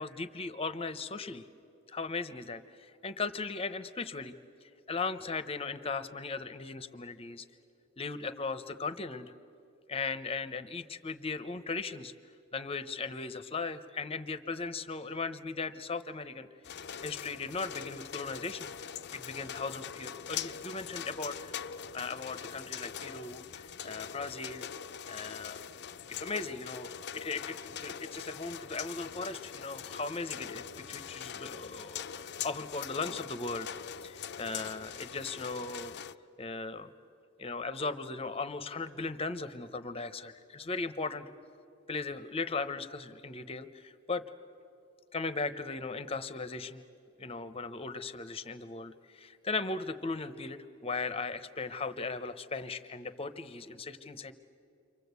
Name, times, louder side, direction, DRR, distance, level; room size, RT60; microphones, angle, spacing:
voice 1, 0.0-1.4 1.9-4.3 4.6-7.5 8.0-9.3 9.9-12.1 12.5-16.5 17.0-18.7 19.1-21.7 21.9-24.7 25.1-25.6 26.1-35.9 36.4-36.9 37.4-41.3 41.9-44.2 45.1-46.8 47.2-54.3, left 4 dB, 30° left, 12 dB, 0.9 m, -38 dB
sound 1, 16.6-36.1, left 8 dB, 55° left, 0.6 m, -42 dB
29.5 x 24.5 x 8.2 m, 2.7 s
head